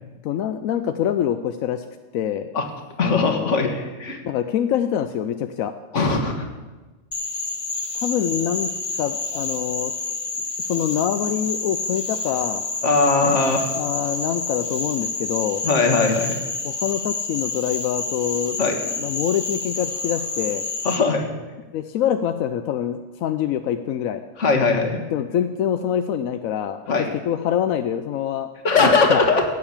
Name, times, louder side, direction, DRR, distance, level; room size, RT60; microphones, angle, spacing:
voice 1, 0.2-1.8 2.1-2.5 3.0-3.6 4.2-5.7 7.9-9.9 10.6-12.6 13.7-15.6 16.6-18.6 18.9-20.7 21.7-24.2 24.9-26.9 27.3-28.5 28.8-29.2, left 9 dB, 90° left, 8 dB, 1.0 m, -25 dB
voice 2, 3.0-4.2 5.9-6.5 12.8-13.7 15.6-16.4 18.6-18.8 20.8-21.3 24.4-25.0 26.9-27.1 28.6-29.5, left 4 dB, 65° left, 4 dB, 1.9 m, -20 dB
Frog, 7.1-21.0, left 3 dB, 30° left, 0.9 m, -29 dB
17.0 x 6.9 x 7.2 m, 1.2 s
omnidirectional pair, 1.4 m